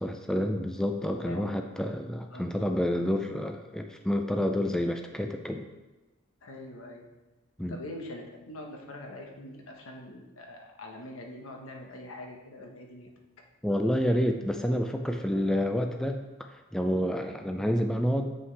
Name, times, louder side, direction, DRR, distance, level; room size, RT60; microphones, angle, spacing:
voice 1, 0.0-5.6 7.6-7.8 13.6-16.2 16.7-18.3, equal, 5° left, 4 dB, 0.3 m, -28 dB
voice 2, 1.1-1.6 2.3-2.5 6.4-7.0 7.7-13.1, left 1 dB, 85° left, 2 dB, 1.1 m, -43 dB
7.5 x 5.5 x 3.3 m, 1.1 s
head